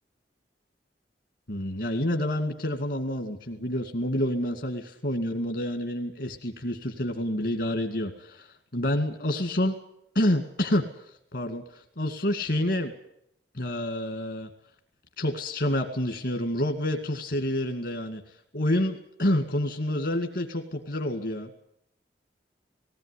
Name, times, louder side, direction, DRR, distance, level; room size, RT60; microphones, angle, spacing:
voice 1, 1.5-9.7 10.1-12.9 13.5-14.5 15.2-21.5, left 1 dB, 70° left, 6 dB, 2.1 m, -28 dB
19.0 x 18.0 x 9.8 m, 0.76 s
head